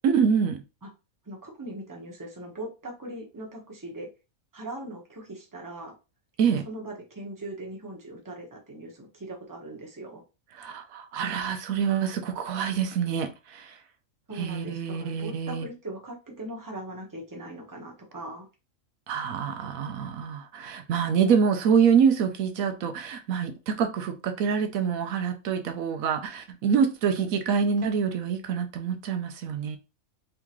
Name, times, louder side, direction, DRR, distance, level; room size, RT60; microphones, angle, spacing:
voice 1, 0.0-0.6 6.4-6.7 10.6-13.8 14.4-15.7 19.1-29.8, right 7 dB, 80° right, 1.1 m, -26 dB
voice 2, 1.2-4.1 4.5-5.9 6.6-10.2 14.3-18.5, right 1 dB, 15° right, 1.0 m, -40 dB
3.7 x 3.6 x 3.0 m
omnidirectional pair, 1.4 m